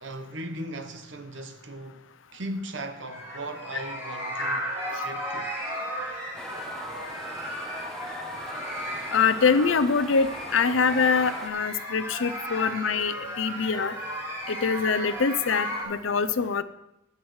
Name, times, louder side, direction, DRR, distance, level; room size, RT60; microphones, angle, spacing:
voice 1, 0.0-2.1 2.3-4.7 5.0-5.5, right 1 dB, 65° right, 1.0 m, -37 dB
sound 1, 2.9-15.8, equal, 15° right, 4.0 m, -35 dB
sound 2, 6.3-11.5, left 1 dB, 5° left, 1.0 m, -42 dB
voice 2, 9.1-14.0 14.5-16.6, left 5 dB, 75° left, 0.6 m, -24 dB
15.5 x 8.8 x 3.2 m
head